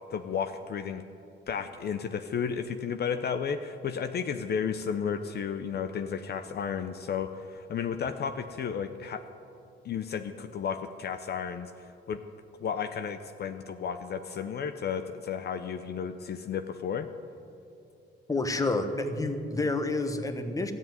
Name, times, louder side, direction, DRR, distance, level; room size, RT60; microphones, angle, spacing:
voice 1, 0.1-1.0 1.5-9.2 9.8-12.2 12.6-17.1, left 7 dB, 55° left, 8 dB, 0.7 m, -33 dB
voice 2, 18.3-20.7, left 2 dB, 15° left, 7 dB, 1.2 m, -29 dB
13.5 x 7.5 x 9.3 m, 2.7 s
cardioid pair, 90°, 20 cm